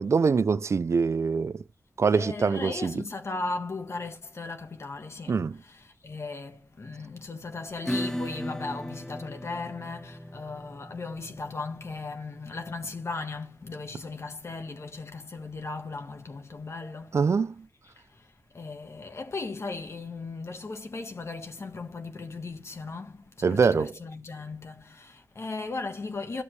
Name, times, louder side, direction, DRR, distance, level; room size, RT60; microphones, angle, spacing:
voice 1, 0.0-1.6 2.0-3.0 5.3-5.6 17.1-17.6 23.4-23.9, right 5 dB, 60° right, 0.4 m, -24 dB
voice 2, 2.1-17.2 18.0-18.3 18.5-26.4, left 3 dB, 55° left, 1.5 m, -37 dB
Acoustic guitar / Strum, 7.8-15.1, equal, 5° left, 0.8 m, -38 dB
13.0 x 7.1 x 3.2 m
wide cardioid pair, 70°, 5 cm